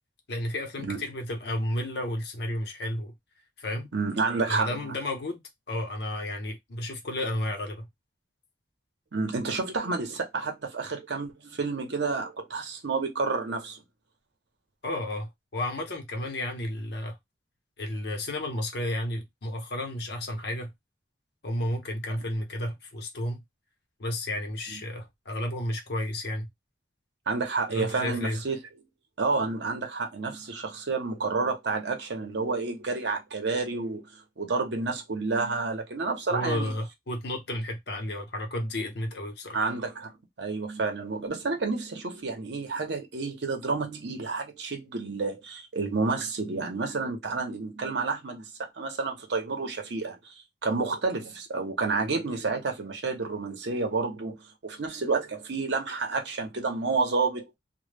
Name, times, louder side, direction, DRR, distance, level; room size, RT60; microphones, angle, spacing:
voice 1, 0.3-3.1 3.6-3.9 4.5-5.4 5.7-7.9 14.8-17.2 17.8-20.7 21.4-23.4 24.0-26.5 27.7-28.4 36.3-39.6, left 1 dB, 60° left, 0.7 m, -32 dB
voice 2, 3.9-4.8 9.1-13.8 24.7-24.8 27.3-28.6 29.2-36.7 39.5-40.1 40.4-50.3 50.6-57.4, right 4 dB, 65° right, 0.7 m, -30 dB
2.1 x 2.0 x 3.2 m
head